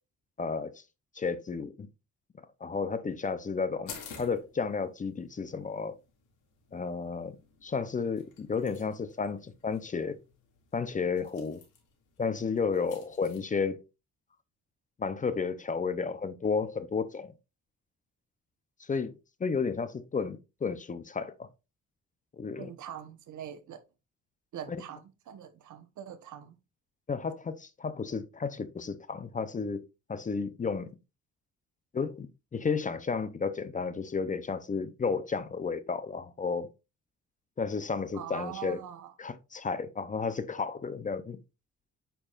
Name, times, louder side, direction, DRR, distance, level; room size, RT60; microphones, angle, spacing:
voice 1, 0.4-0.8 1.2-1.9 2.6-6.0 6.7-7.4 7.6-10.2 10.7-11.6 12.2-13.8 15.0-17.3 18.8-19.1 19.4-21.5 22.4-22.7 27.1-30.9 31.9-32.3 32.5-36.7 37.6-38.8 39.2-41.4, left 5 dB, 25° left, 0.6 m, -32 dB
sound 1, 3.9-13.4, left 6 dB, 80° left, 2.2 m, -52 dB
voice 2, 22.6-23.8 24.5-26.6 38.1-39.1, right 9 dB, 75° right, 1.0 m, -43 dB
8.7 x 4.7 x 2.4 m
cardioid pair, 125°, 30 cm